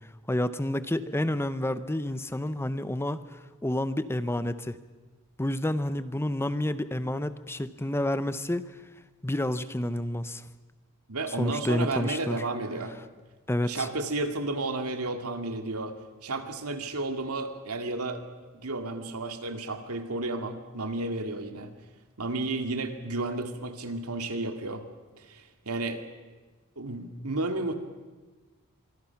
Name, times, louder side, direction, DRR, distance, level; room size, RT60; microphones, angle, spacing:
voice 1, 0.3-4.8 5.4-8.7 9.2-10.4 11.3-12.4 13.5-13.9, left 1 dB, 10° left, 13 dB, 0.7 m, -29 dB
voice 2, 11.1-12.9 13.6-15.9 16.2-18.2 18.5-21.7 22.2-24.8 25.2-26.0 26.8-27.7, right 2 dB, 80° right, 6 dB, 2.2 m, -32 dB
25.0 x 24.5 x 5.9 m, 1.3 s
head